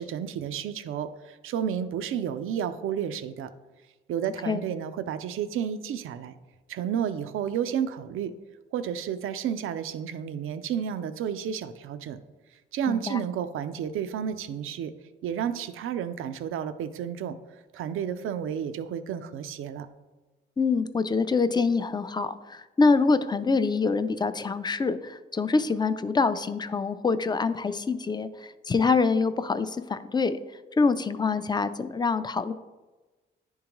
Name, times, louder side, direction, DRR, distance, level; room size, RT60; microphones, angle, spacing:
voice 1, 0.0-3.5 4.1-6.3 6.7-8.3 8.7-12.2 12.7-14.9 15.2-17.3 17.7-19.9, right 8 dB, 85° right, 11 dB, 0.4 m, -31 dB
voice 2, 12.9-13.2 20.6-30.4 30.8-32.5, left 4 dB, 20° left, 12 dB, 0.4 m, -25 dB
10.0 x 3.7 x 3.0 m, 1.2 s
cardioid pair, 75°, 21 cm